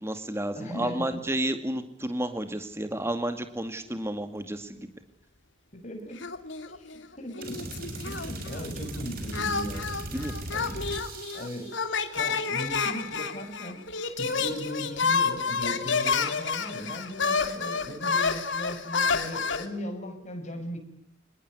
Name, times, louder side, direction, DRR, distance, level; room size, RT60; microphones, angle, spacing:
voice 1, 0.0-4.9 10.1-10.3, right 1 dB, 15° right, 8 dB, 2.3 m, -31 dB
voice 2, 0.5-1.2 5.7-6.2 6.7-7.7 8.1-9.9 10.5-10.7 11.3-11.7 12.1-13.8 14.2-20.8, equal, 35° left, 5 dB, 6.8 m, -38 dB
sound 1, 6.2-7.1 7.3-8.7 9.3-19.7, left 5 dB, 70° left, 3.0 m, -29 dB
sound 2, 7.4-11.9, right 1 dB, 50° right, 6.6 m, -38 dB
26.0 x 21.0 x 9.9 m, 0.67 s
head